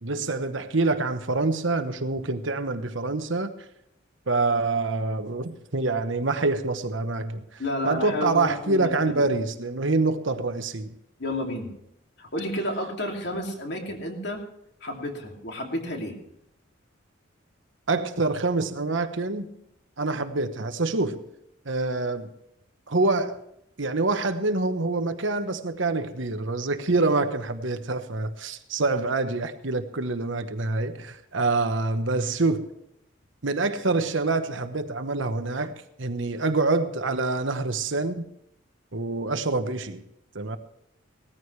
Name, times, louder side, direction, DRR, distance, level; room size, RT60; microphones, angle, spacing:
voice 1, 0.0-3.5 4.3-10.9 17.9-19.5 20.0-21.2 21.6-22.3 22.9-23.4 23.8-32.7 33.4-35.7 36.0-38.3 38.9-40.0 40.3-40.6, right 3 dB, 70° right, 1.1 m, -26 dB
voice 2, 7.6-9.3 11.2-11.7 12.2-14.4 14.8-16.2, left 1 dB, 55° left, 2.7 m, -31 dB
18.0 x 14.0 x 3.3 m
head